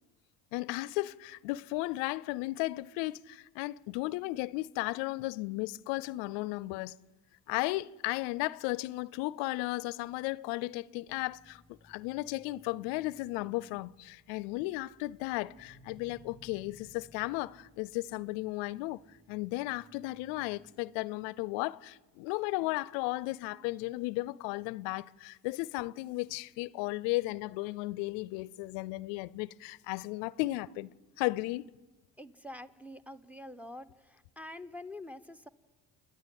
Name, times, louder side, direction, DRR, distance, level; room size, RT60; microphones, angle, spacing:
voice 1, 0.5-6.9 7.5-19.0 19.3-30.9 31.2-31.7, left 20 dB, 85° left, 0.5 m, -35 dB
sound 1, 11.1-20.7, left 1 dB, 20° right, 5.9 m, -61 dB
voice 2, 32.2-35.5, left 1 dB, 5° right, 0.8 m, -46 dB
29.5 x 10.0 x 9.2 m
supercardioid pair, 75°, 40 cm